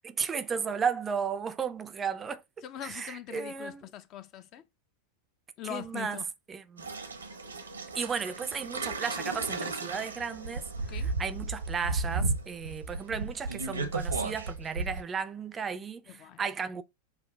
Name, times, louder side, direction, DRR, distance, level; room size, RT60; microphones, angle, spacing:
voice 1, 0.0-2.4 2.8-3.8 5.7-6.2 6.5-6.9 7.9-10.6 11.2-16.8, right 6 dB, 20° right, 0.4 m, -34 dB
voice 2, 2.6-4.6 5.6-6.3 10.8-11.1 16.1-16.4, left 12 dB, 35° left, 0.5 m, -42 dB
sound 1, 6.8-15.0, right 3 dB, 75° right, 0.8 m, -34 dB
6.2 x 2.4 x 3.3 m
figure-of-eight pair, 90°, 0 cm